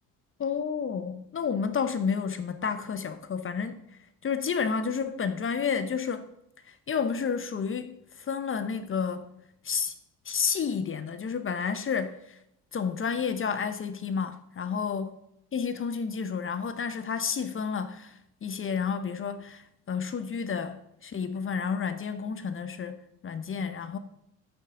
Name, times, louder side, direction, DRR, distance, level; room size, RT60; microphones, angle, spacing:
voice 1, 0.4-3.8 4.2-6.3 6.9-7.9 8.3-9.2 9.6-9.9 10.3-12.2 12.7-15.2 15.5-18.1 18.4-19.6 19.9-24.0, left 6 dB, 30° left, 0.8 m, -30 dB
9.1 x 8.3 x 3.8 m
supercardioid pair, 85°, 39 cm